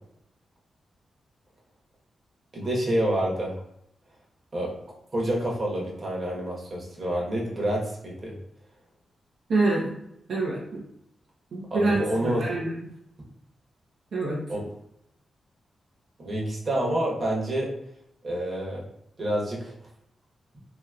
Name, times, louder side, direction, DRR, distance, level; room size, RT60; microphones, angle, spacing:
voice 1, 2.5-3.5 4.5-4.8 5.1-8.3 11.7-12.6 14.5-14.6 16.2-17.7 18.2-18.9 19.2-19.7, right 1 dB, 50° right, -3 dB, 1.3 m, -28 dB
voice 2, 9.5-9.9 10.3-10.8 11.5-12.7 14.1-14.4, right 2 dB, 75° right, -5 dB, 0.8 m, -26 dB
3.0 x 3.0 x 2.4 m, 0.77 s
supercardioid pair, 45°, 0 cm